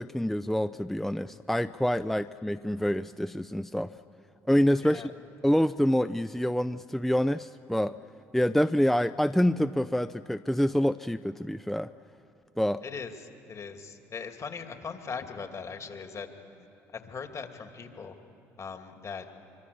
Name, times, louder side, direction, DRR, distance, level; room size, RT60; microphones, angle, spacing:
voice 1, 0.0-3.9 4.5-5.0 5.4-7.9 8.3-11.9 12.6-12.8, equal, 5° left, 12 dB, 0.5 m, -26 dB
voice 2, 12.8-16.3 16.9-18.2 18.6-19.2, left 5 dB, 45° left, 6 dB, 2.6 m, -39 dB
25.0 x 24.0 x 6.9 m, 3.0 s
hypercardioid pair, 55°, 8 cm